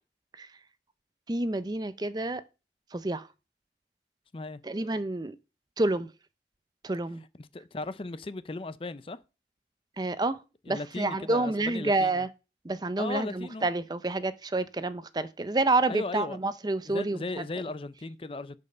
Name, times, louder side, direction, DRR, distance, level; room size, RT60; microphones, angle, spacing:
voice 1, 1.3-2.4 2.9-3.3 4.6-5.4 5.8-6.1 6.8-7.2 10.0-10.4 10.7-12.3 12.6-17.4, right 2 dB, 25° right, 0.5 m, -29 dB
voice 2, 7.4-9.2 10.7-12.2 13.0-13.7 15.9-16.4 16.8-18.6, left 2 dB, 30° left, 0.5 m, -37 dB
10.5 x 5.4 x 5.5 m
head